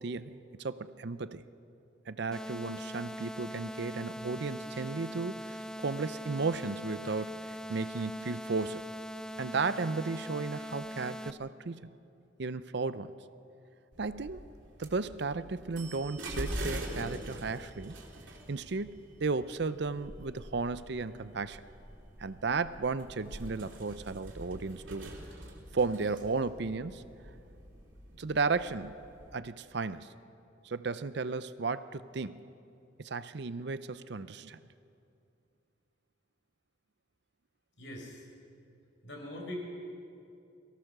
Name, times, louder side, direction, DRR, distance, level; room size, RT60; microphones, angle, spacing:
voice 1, 0.0-1.4 2.1-8.9 9.4-11.9 12.4-13.1 14.0-14.4 14.8-17.9 18.5-21.6 22.2-25.1 25.7-27.1 28.2-29.0 29.3-30.1 30.6-32.4 33.0-34.6, right 4 dB, 60° right, 14 dB, 0.6 m, -34 dB
sound 1, 2.3-11.3, equal, 5° left, 0.4 m, -41 dB
sound 2, 13.9-29.3, right 1 dB, 80° right, 3.4 m, -44 dB
voice 2, 37.8-38.3 39.0-39.6, left 1 dB, 70° left, 1 dB, 4.9 m, -41 dB
23.0 x 17.0 x 6.7 m, 2.6 s
head